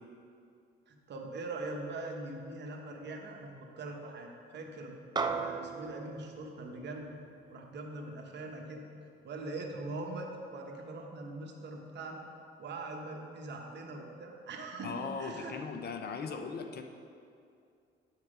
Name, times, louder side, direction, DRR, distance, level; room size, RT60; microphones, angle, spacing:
voice 1, 0.9-4.9 5.2-7.1 7.5-8.9 9.2-12.2 12.6-15.7, right 2 dB, 60° right, 2 dB, 1.1 m, -42 dB
sound 1, 5.2-9.8, right 4 dB, 20° right, 0.4 m, -39 dB
voice 2, 14.8-16.8, left 5 dB, 55° left, 6 dB, 0.7 m, -38 dB
9.5 x 4.7 x 4.9 m, 2.4 s
cardioid pair, 90°, 20 cm